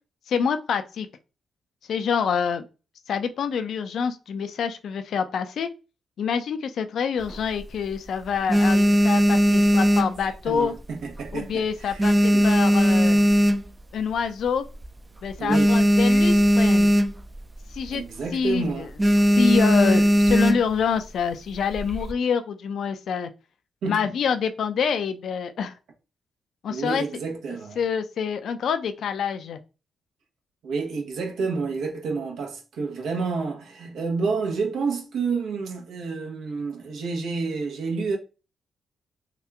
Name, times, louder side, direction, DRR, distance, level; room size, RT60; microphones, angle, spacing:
voice 1, 0.3-1.1 1.9-2.6 3.1-5.7 6.2-10.7 11.3-13.2 13.9-14.7 15.2-16.9 17.7-18.0 18.3-18.9 19.4-23.3 23.8-25.7 26.6-27.0 27.8-29.6, left 6 dB, 70° left, 0.4 m, -26 dB
sound 1, 7.2-7.9 8.3-10.8 11.1-11.5 11.8-14.0 14.5-14.6 14.8-14.9 15.2-17.4 17.7-18.0 18.3-18.5 19.0-20.8 21.5-22.1, equal, 25° right, 0.4 m, -19 dB
voice 2, 10.2-12.5 15.4-15.8 17.9-18.9 23.8-24.0 26.7-27.8 30.6-38.2, right 4 dB, 75° right, 0.8 m, -29 dB
2.9 x 2.3 x 3.3 m
supercardioid pair, 45°, 0 cm